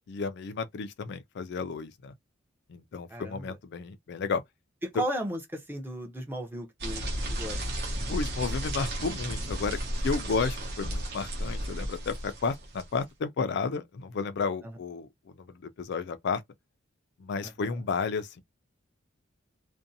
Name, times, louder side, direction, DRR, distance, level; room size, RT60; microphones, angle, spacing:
voice 1, 0.1-2.1 2.7-4.4 8.1-9.8 10.0-16.4 17.2-18.4, left 5 dB, 60° left, 0.4 m, -32 dB
voice 2, 3.1-3.6 4.8-7.0 7.3-7.6 14.6-14.7 17.4-17.8, right 1 dB, 10° right, 0.7 m, -35 dB
sound 1, 6.8-13.0, right 1 dB, 55° right, 0.9 m, -33 dB
2.6 x 2.1 x 2.6 m
head